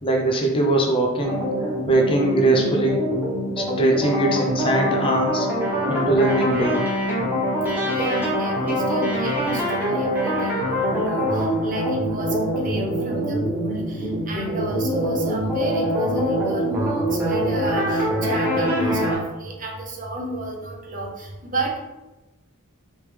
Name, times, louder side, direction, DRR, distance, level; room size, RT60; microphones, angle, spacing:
voice 1, 0.0-1.4 1.9-3.0 3.6-5.5 5.9-6.8, right 2 dB, 25° left, 0 dB, 0.5 m, -21 dB
sound 1, 1.2-19.2, equal, 10° right, 1.0 m, -24 dB
voice 2, 7.9-21.9, right 1 dB, 35° right, 0 dB, 0.7 m, -31 dB
3.2 x 3.1 x 3.3 m, 1.0 s
head